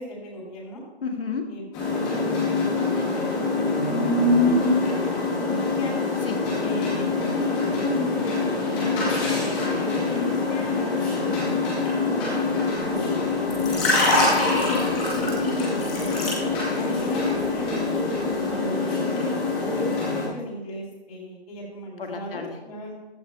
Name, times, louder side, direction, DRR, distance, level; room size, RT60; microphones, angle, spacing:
voice 1, 0.0-0.8 1.5-1.6 2.1-2.8 3.1-6.0 6.6-9.4 9.8-13.8 14.8-18.1 18.4-19.4 19.6-22.9, equal, 35° left, -2 dB, 3.7 m, -36 dB
voice 2, 1.0-1.5 6.2-6.5 9.2-9.6 14.2-14.9 22.0-22.6, left 5 dB, 60° left, 3 dB, 1.9 m, -32 dB
sound 1, 1.7-20.2, left 3 dB, 5° left, 0.8 m, -24 dB
15.0 x 12.5 x 2.3 m, 1.1 s
hypercardioid pair, 165°, 32 cm